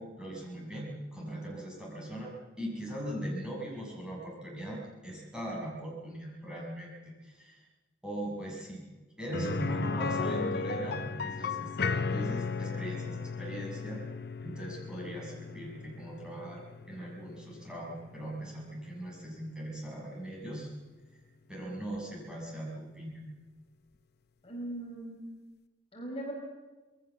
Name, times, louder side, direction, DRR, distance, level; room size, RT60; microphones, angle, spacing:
voice 1, 0.0-2.3 2.6-7.0 7.2-7.6 8.0-8.8 9.2-14.0 14.4-16.6 16.9-20.7 21.5-23.2, right 1 dB, 5° right, -4 dB, 7.1 m, -40 dB
sound 1, 9.3-19.1 19.4-19.5 21.9-22.0, left 4 dB, 55° left, 0.7 m, -35 dB
voice 2, 24.4-25.3 25.9-26.3, right 1 dB, 30° left, -1 dB, 5.2 m, -39 dB
27.0 x 20.5 x 7.4 m, 1.2 s
head